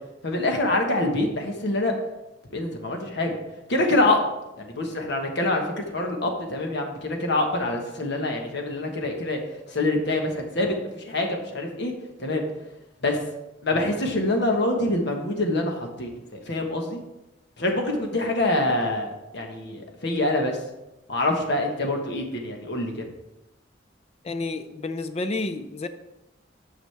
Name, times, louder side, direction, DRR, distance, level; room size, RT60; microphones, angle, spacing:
voice 1, 0.2-1.9 2.5-3.4 3.7-4.2 4.6-9.4 9.7-11.9 12.2-12.4 13.0-13.2 13.6-17.0 17.6-20.6 21.1-23.0, left 2 dB, 65° left, 3 dB, 1.3 m, -25 dB
voice 2, 24.2-25.9, left 3 dB, 35° left, 9 dB, 0.5 m, -30 dB
9.5 x 6.4 x 3.4 m, 0.95 s
head